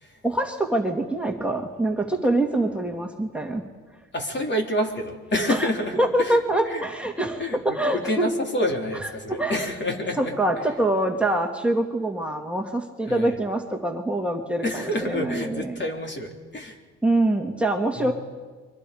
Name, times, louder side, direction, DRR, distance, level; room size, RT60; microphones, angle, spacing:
voice 1, 0.2-3.6 5.5-5.7 6.0-8.3 9.3-9.6 10.2-15.8 17.0-18.1, right 1 dB, 5° right, 1 dB, 2.3 m, -25 dB
voice 2, 4.1-6.4 6.7-6.9 7.4-10.3 13.1-13.4 14.6-16.8 18.0-18.1, left 1 dB, 35° left, 2 dB, 3.6 m, -28 dB
29.5 x 24.0 x 5.1 m, 1.4 s
cardioid pair, 90°, 30 cm